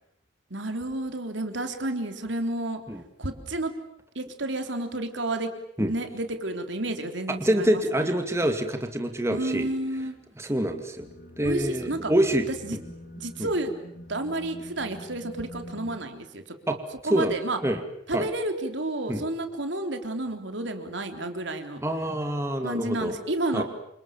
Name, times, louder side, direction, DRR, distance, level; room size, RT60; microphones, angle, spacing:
voice 1, 0.5-2.8 3.2-3.7 4.2-5.5 5.9-8.1 9.3-10.2 11.4-12.1 12.6-12.8 13.2-13.7 14.1-16.4 16.7-16.8 17.0-17.6 18.1-21.8 22.6-23.6, right 2 dB, 70° right, 6 dB, 3.7 m, -31 dB
voice 2, 7.3-9.7 10.4-11.1 11.4-12.5 12.7-12.8 13.4-13.5 16.7-16.8 17.1-17.3 17.6-17.8 18.1-18.3 19.1-19.2 21.8-23.2 23.5-23.6, right 1 dB, 15° right, 5 dB, 2.4 m, -26 dB
sound 1, 11.0-16.0, equal, 60° left, 4.1 m, -45 dB
29.0 x 27.0 x 7.5 m, 0.74 s
head